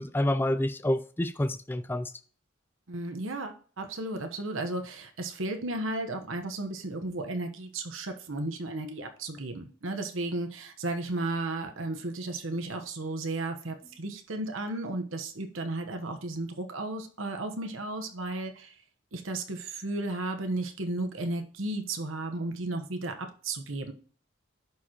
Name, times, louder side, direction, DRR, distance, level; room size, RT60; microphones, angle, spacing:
voice 1, 0.0-2.1, left 1 dB, 10° left, 0.3 m, -28 dB
voice 2, 2.9-18.7 19.1-23.9, right 2 dB, 80° right, 1.1 m, -34 dB
11.0 x 4.8 x 2.9 m
head